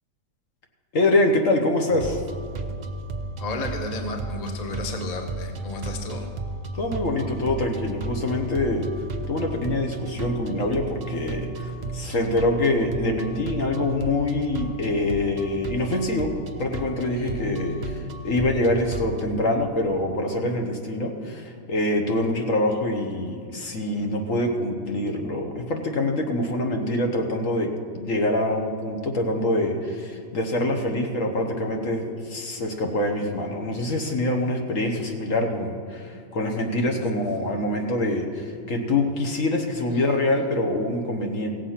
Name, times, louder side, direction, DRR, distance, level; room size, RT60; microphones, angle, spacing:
voice 1, 0.9-2.2 6.7-8.9 9.3-16.3 16.6-41.6, left 1 dB, 55° left, 3 dB, 1.4 m, -25 dB
sound 1, 1.9-19.2, right 2 dB, 50° right, 0.5 m, -34 dB
voice 2, 3.4-6.3 17.1-18.2 36.4-37.1, left 2 dB, 30° left, 4 dB, 0.9 m, -34 dB
17.0 x 7.5 x 5.8 m, 2.4 s
omnidirectional pair, 1.7 m